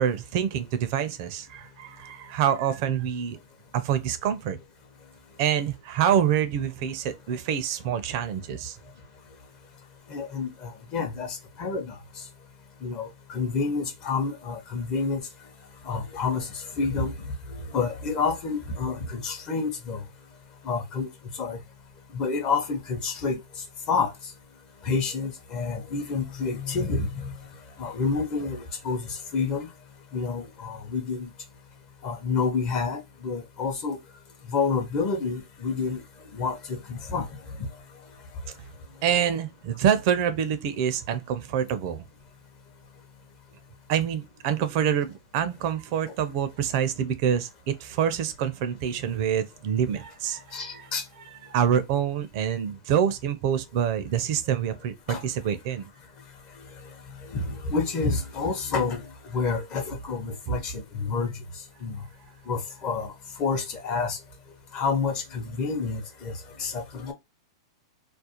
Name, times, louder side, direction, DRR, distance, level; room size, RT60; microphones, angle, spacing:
voice 1, 0.0-3.4 3.7-4.6 5.4-8.8 39.0-42.0 43.9-50.9 51.5-55.9, right 9 dB, 50° right, 0.4 m, -26 dB
voice 2, 10.1-11.9 12.8-15.2 15.9-16.5 16.8-17.1 17.5-20.0 20.6-21.1 21.4-21.6 22.1-23.4 23.9-24.1 24.8-27.3 27.8-29.0 29.3-29.7 30.1-31.3 32.0-34.0 34.5-36.0 36.3-37.3 50.5-51.0 55.1-55.2 57.2-59.0 59.3-61.3 61.8-62.0 62.5-63.1 63.4-64.2 64.7-66.3 66.6-67.1, left 4 dB, 35° left, 0.7 m, -28 dB
2.4 x 2.0 x 2.8 m
hypercardioid pair, 135°, 3 cm